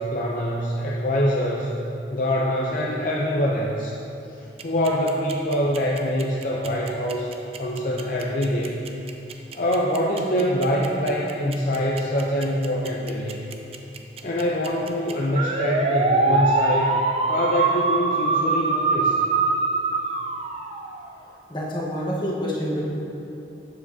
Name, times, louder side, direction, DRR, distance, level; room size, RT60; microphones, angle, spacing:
voice 1, 0.0-1.7 2.1-4.0 4.4-7.3 7.6-8.7 9.5-13.4 14.2-17.0 17.3-19.2, equal, 50° left, -3 dB, 0.5 m, -24 dB
sound 1, 4.6-21.1, right 3 dB, 35° right, 0.4 m, -23 dB
voice 2, 21.5-22.8, equal, 25° left, -4 dB, 1.1 m, -27 dB
8.4 x 7.3 x 2.7 m, 2.9 s
head